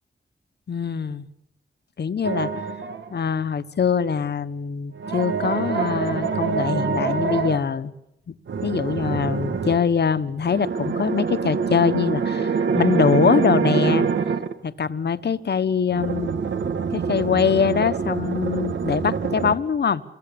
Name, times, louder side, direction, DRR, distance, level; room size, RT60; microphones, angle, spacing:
voice 1, 0.7-1.3 2.0-2.5 3.1-7.9 8.6-14.1 14.6-16.3 16.9-20.0, left 6 dB, 60° left, 1.4 m, -23 dB
sound 1, 2.2-3.1 5.0-7.6 8.5-9.8 10.4-14.5 15.9-19.6, right 5 dB, 80° right, 1.9 m, -25 dB
28.0 x 22.5 x 8.8 m
wide cardioid pair, 130°, 19 cm